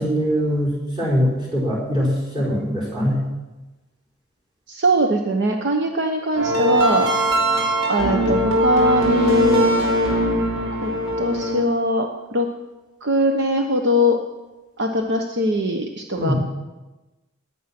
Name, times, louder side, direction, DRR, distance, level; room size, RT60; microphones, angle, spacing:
voice 1, 0.0-3.2 16.1-16.4, equal, 20° right, -4 dB, 5.0 m, -22 dB
voice 2, 4.7-7.1 7.9-9.7 10.8-10.9 11.2-12.5 13.0-14.2 14.8-16.3, equal, 55° right, 4 dB, 1.0 m, -21 dB
sound 1, 6.3-11.6, equal, 80° right, 5.1 m, -20 dB
19.0 x 9.4 x 6.0 m, 1.1 s
head